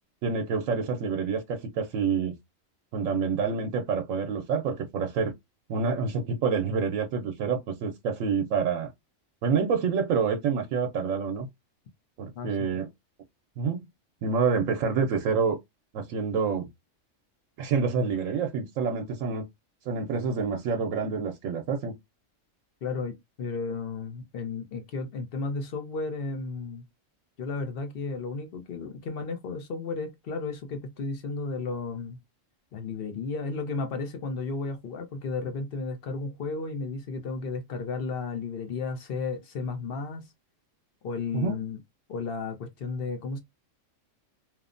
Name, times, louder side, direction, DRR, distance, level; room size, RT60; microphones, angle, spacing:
voice 1, 0.2-2.3 2.9-5.3 5.7-8.9 9.4-11.5 12.2-12.9 13.6-13.9 14.2-15.6 15.9-16.7 17.6-19.5 19.9-21.9 41.3-41.6, right 5 dB, 85° right, 1.0 m, -27 dB
voice 2, 12.3-12.8 22.8-26.8 27.4-32.2 32.7-40.3 41.0-41.8 42.1-43.4, left 4 dB, 55° left, 0.7 m, -33 dB
3.0 x 2.0 x 2.4 m
omnidirectional pair, 1.3 m